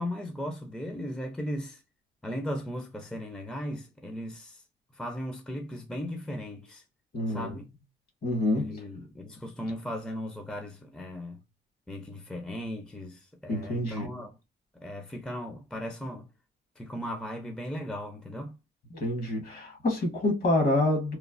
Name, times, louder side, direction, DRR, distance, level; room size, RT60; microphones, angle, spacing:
voice 1, 0.0-1.8 2.2-4.6 4.9-6.8 7.3-7.6 8.5-11.4 11.9-14.4 14.8-16.3 16.8-18.6, equal, 5° left, 0.5 m, -37 dB
voice 2, 7.1-7.5 8.2-8.8 13.5-14.1 18.9-21.2, left 1 dB, 50° left, 1.3 m, -27 dB
3.1 x 2.0 x 2.5 m
cardioid pair, 90°, 20 cm